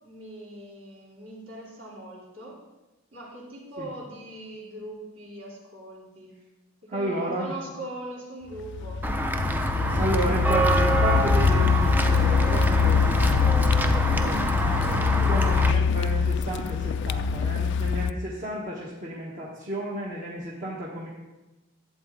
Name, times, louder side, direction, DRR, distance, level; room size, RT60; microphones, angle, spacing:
voice 1, 0.0-2.6 3.1-6.4 6.9-9.0, right 1 dB, 65° right, -5 dB, 3.3 m, -41 dB
voice 2, 6.9-7.5 9.9-21.1, right 1 dB, 40° right, -5 dB, 1.3 m, -32 dB
Car, 8.6-18.1, left 5 dB, 60° left, 0.3 m, -23 dB
Walk footsteps / Bell, 9.0-15.7, right 2 dB, 10° right, 0.4 m, -26 dB
11.5 x 7.8 x 3.8 m, 1.1 s
head